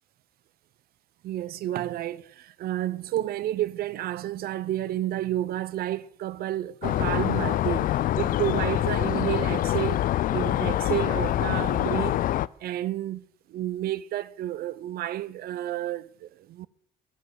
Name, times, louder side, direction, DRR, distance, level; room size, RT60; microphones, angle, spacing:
voice 1, 1.2-10.0 10.3-12.2 12.6-16.7, right 13 dB, 65° right, 0.7 m, -31 dB
sound 1, 6.8-12.5, left 13 dB, 55° left, 0.4 m, -25 dB
10.5 x 9.7 x 7.9 m
cardioid pair, 110°, 17 cm